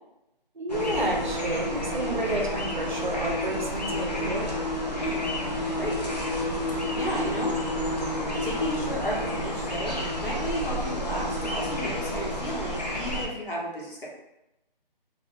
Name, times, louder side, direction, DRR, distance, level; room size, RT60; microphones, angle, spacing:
voice 1, 0.5-4.5, right 1 dB, 55° right, 0 dB, 0.6 m, -31 dB
sound 1, 0.7-13.3, left 1 dB, 45° left, 0.5 m, -30 dB
voice 2, 7.0-7.6 8.4-14.1, equal, 65° left, -4 dB, 1.0 m, -33 dB
2.3 x 2.1 x 2.9 m, 0.90 s
figure-of-eight pair, 175°, 29 cm